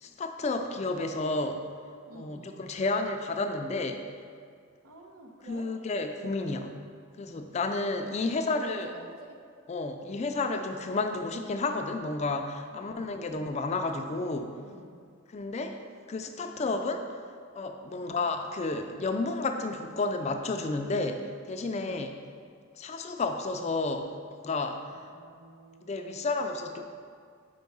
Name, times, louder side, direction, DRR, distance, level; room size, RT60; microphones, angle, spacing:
voice 1, 0.0-1.6 2.1-4.0 5.5-6.7 7.2-8.9 9.7-14.5 15.3-15.8 16.1-17.0 17.5-22.1 22.8-24.1 24.4-24.8 25.9-26.8, left 3 dB, 30° left, 6 dB, 0.3 m, -31 dB
voice 2, 2.1-2.6 4.8-5.7 8.2-9.4 10.6-10.7 12.7-13.2 14.6-15.0 16.5-16.9 18.0-18.3 21.7-22.1 24.9-26.2, right 2 dB, 80° right, 1 dB, 0.9 m, -49 dB
5.1 x 4.6 x 5.4 m, 2.1 s
head